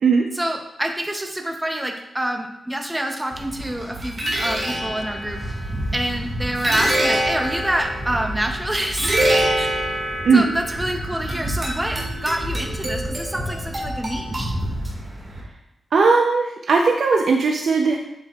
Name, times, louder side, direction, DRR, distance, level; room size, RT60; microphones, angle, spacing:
voice 1, 0.4-5.4 5.9-9.2 9.5-10.0 10.3-14.6, right 1 dB, 10° right, 3 dB, 0.7 m, -27 dB
sound 1, 3.3-15.4, right 1 dB, 30° right, 2.0 m, -26 dB
voice 2, 15.9-18.0, right 4 dB, 65° right, 2 dB, 0.6 m, -17 dB
8.0 x 7.3 x 2.4 m, 0.83 s
wide cardioid pair, 160°, 0 cm